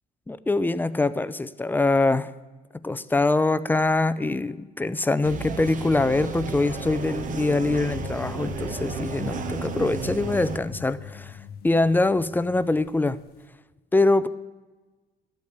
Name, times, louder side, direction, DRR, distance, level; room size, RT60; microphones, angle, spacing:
voice 1, 0.3-2.3 2.8-11.4 11.6-13.2 13.9-14.3, left 2 dB, 10° left, 15 dB, 0.5 m, -23 dB
sound 1, 5.2-10.6, right 6 dB, 50° right, 1.2 m, -33 dB
sound 2, 7.9-13.4, left 8 dB, 70° left, 0.7 m, -40 dB
12.5 x 8.6 x 8.0 m, 1.2 s
cardioid pair, 110°, 17 cm